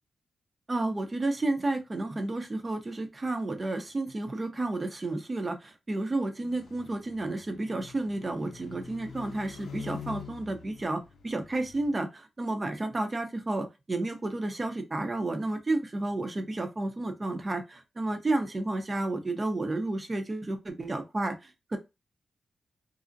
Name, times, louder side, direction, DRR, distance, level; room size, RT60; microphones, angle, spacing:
voice 1, 0.7-21.8, right 2 dB, 30° right, 6 dB, 0.5 m, -31 dB
sound 1, 6.4-11.9, left 7 dB, 90° left, 0.5 m, -46 dB
2.5 x 2.0 x 2.5 m, 0.24 s
cardioid pair, 85°, 0 cm